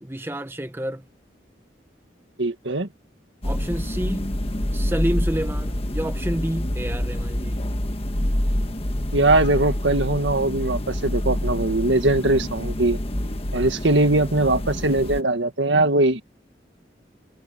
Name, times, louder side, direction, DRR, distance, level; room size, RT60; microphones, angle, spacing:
voice 1, 0.0-1.0 3.4-4.3 4.7-7.6, equal, 10° right, 1.1 m, -29 dB
voice 2, 2.4-2.9 9.1-13.0 13.5-16.2, right 2 dB, 80° right, 1.9 m, -21 dB
sound 1, 3.4-15.2, left 1 dB, 30° left, 1.4 m, -27 dB
head